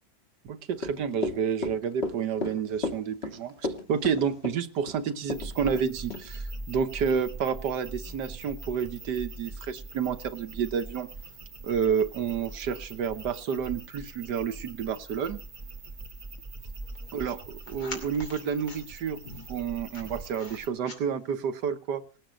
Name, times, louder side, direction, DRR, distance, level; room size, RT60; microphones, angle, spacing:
voice 1, 0.4-3.5 3.9-11.1 11.6-15.4 17.1-17.4 17.7-19.2 19.5-22.0, right 7 dB, 70° right, 11 dB, 1.6 m, -30 dB
Run / Walk footsteps, 0.7-5.8 6.1-6.2, left 3 dB, 35° left, 2.0 m, -33 dB
sound 1, 2.1-21.5, left 2 dB, 65° left, 3.4 m, -52 dB
sound 2, 5.3-20.7, right 3 dB, 25° right, 1.2 m, -42 dB
19.0 x 9.1 x 6.4 m, 0.41 s
omnidirectional pair, 1.9 m